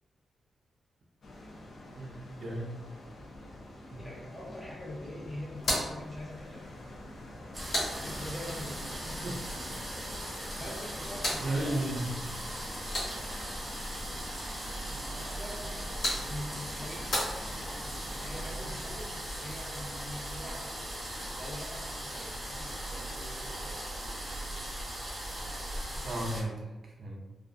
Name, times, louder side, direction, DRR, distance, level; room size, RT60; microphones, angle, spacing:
sound 1, 1.2-18.9, left 1 dB, 55° left, 0.4 m, -47 dB
voice 1, 1.9-2.7 3.9-4.1 9.2-9.4 11.4-12.1 26.0-27.2, right 1 dB, 50° right, -2 dB, 0.5 m, -34 dB
voice 2, 4.0-6.6 7.9-8.8 10.5-11.8 14.8-17.2 18.1-20.8 21.2-24.0, left 1 dB, 20° left, -4 dB, 0.7 m, -44 dB
sound 2, 5.5-8.6 10.6-13.6 15.5-18.0, left 1 dB, 70° left, 0.9 m, -37 dB
sound 3, 7.5-26.4, right 1 dB, 20° right, 0.8 m, -39 dB
2.3 x 2.1 x 2.5 m, 1.1 s
wide cardioid pair, 125°, 0 cm